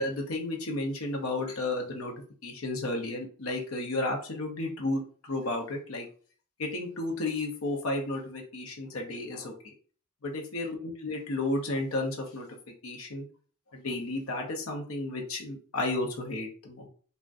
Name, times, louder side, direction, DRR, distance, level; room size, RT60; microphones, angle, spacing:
voice 1, 0.0-2.1 2.4-6.1 6.6-9.5 10.2-12.5 12.8-13.3 13.7-16.9, left 2 dB, 75° left, 2 dB, 0.7 m, -32 dB
3.5 x 2.1 x 2.5 m, 0.43 s
head